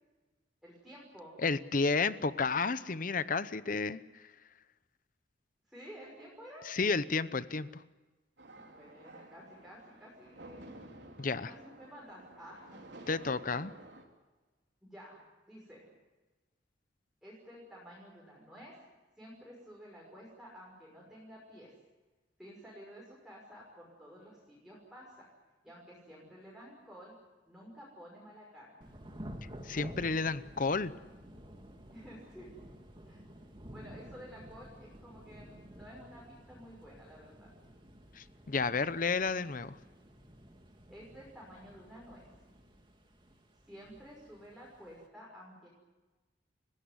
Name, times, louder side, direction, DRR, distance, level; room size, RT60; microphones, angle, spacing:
voice 1, 0.6-1.4 5.7-6.7 8.5-10.8 11.5-12.8 13.3-13.4 14.8-15.2 15.5-15.8 17.2-18.7 19.2-21.7 22.4-25.3 25.6-27.1 27.5-28.8 31.9-32.5 33.0-33.3 33.7-37.5 40.9-42.3 43.7-45.7, equal, 5° right, -5 dB, 6.1 m, -52 dB
voice 2, 1.4-4.0 6.7-7.8 11.2-11.5 13.1-13.7 29.6-30.9 38.2-39.8, left 4 dB, 45° left, 14 dB, 0.8 m, -31 dB
sound 1, 8.4-14.0, right 2 dB, 70° right, 3.8 m, -52 dB
Thunder / Rain, 28.8-45.1, equal, 25° right, 2.5 m, -52 dB
30.0 x 16.5 x 9.7 m, 1.3 s
head